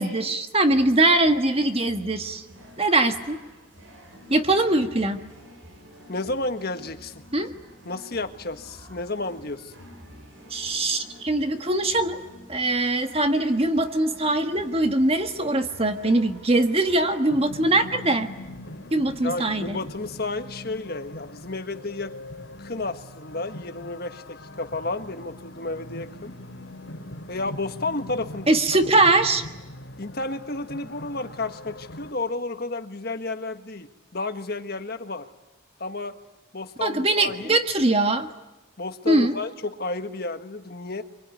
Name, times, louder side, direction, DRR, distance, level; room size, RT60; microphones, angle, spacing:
voice 1, 0.0-2.4 2.8-3.4 4.3-5.2 7.3-7.5 10.5-12.2 12.5-18.3 18.9-19.8 28.5-29.4 36.8-38.3 39.1-39.3, right 2 dB, 30° right, 7 dB, 1.6 m, -22 dB
sound 1, 0.7-17.2, equal, 75° right, 7.3 m, -48 dB
voice 2, 6.1-7.2 7.8-9.7 19.2-22.1 22.6-26.3 27.3-28.8 30.0-35.3 35.8-36.2 36.5-37.6 38.8-41.0, left 2 dB, 50° left, 8 dB, 1.6 m, -32 dB
sound 2, 17.3-32.1, left 1 dB, 75° left, 2.9 m, -41 dB
25.0 x 23.0 x 9.5 m, 1.0 s
head